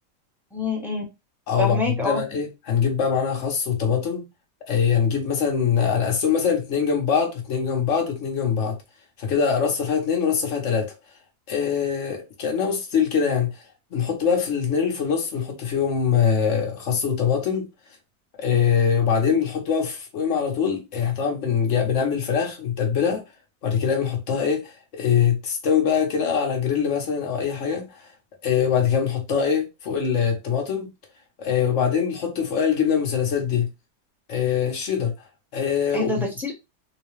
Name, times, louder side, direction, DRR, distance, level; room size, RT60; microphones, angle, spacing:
voice 1, 0.5-1.0 1.6-2.2 35.9-36.5, left 3 dB, ahead, 0.8 m, -26 dB
voice 2, 1.5-4.3 4.7-8.8 9.2-10.9 11.5-13.5 13.9-17.7 18.4-23.2 23.6-28.1 28.4-30.9 31.4-33.7 34.3-35.1 35.5-36.3, left 7 dB, 50° left, 1.2 m, -23 dB
3.8 x 2.3 x 3.1 m
omnidirectional pair, 1.8 m